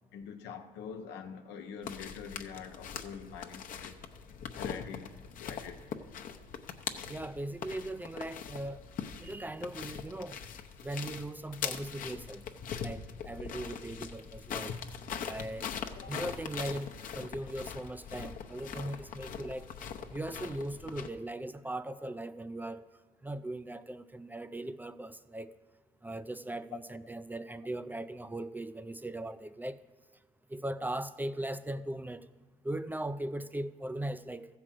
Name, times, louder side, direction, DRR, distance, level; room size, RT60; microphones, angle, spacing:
voice 1, 0.1-4.0 4.5-5.1 5.4-5.8 16.0-16.2, left 6 dB, 85° left, 1.0 m, -45 dB
sound 1, 1.8-21.1, left 7 dB, 55° left, 0.8 m, -42 dB
voice 2, 7.1-8.8 9.2-10.4 10.8-12.4 12.8-14.8 15.3-15.7 16.1-19.7 20.1-22.8 23.2-25.5 26.0-29.8 30.5-32.3 32.6-34.5, right 1 dB, 10° right, 0.4 m, -39 dB
14.5 x 4.9 x 7.5 m
cardioid pair, 110°, 17 cm